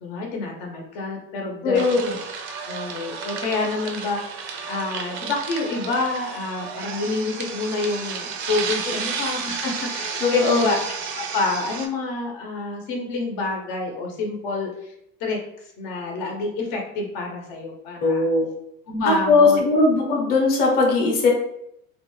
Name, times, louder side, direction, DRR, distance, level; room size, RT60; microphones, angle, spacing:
voice 1, 0.0-2.2 2.5-10.8 11.1-14.9 15.2-18.2 18.9-19.6, left 3 dB, 65° left, 0 dB, 0.7 m, -28 dB
voice 2, 1.6-2.1 10.2-10.7 18.0-18.5 19.0-21.3, left 3 dB, 30° left, -2 dB, 0.7 m, -19 dB
sound 1, 1.7-11.9, right 6 dB, 45° right, 0.4 m, -32 dB
2.4 x 2.2 x 3.1 m, 0.77 s
cardioid pair, 155°, 29 cm